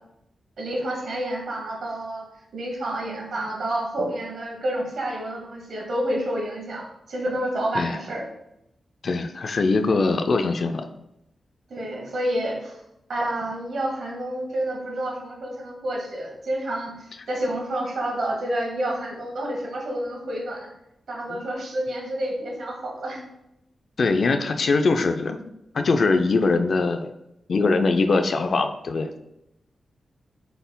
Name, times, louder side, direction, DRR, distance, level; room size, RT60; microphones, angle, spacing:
voice 1, 0.6-2.3 2.5-8.2 11.7-12.8 13.1-20.7 21.1-23.2, right 1 dB, 65° right, -1 dB, 1.2 m, -29 dB
voice 2, 9.0-10.9 21.3-21.4 24.0-25.4 25.7-27.1 27.5-29.1, left 3 dB, 50° left, 7 dB, 0.3 m, -22 dB
5.2 x 4.1 x 2.2 m, 0.82 s
wide cardioid pair, 155°, 0 cm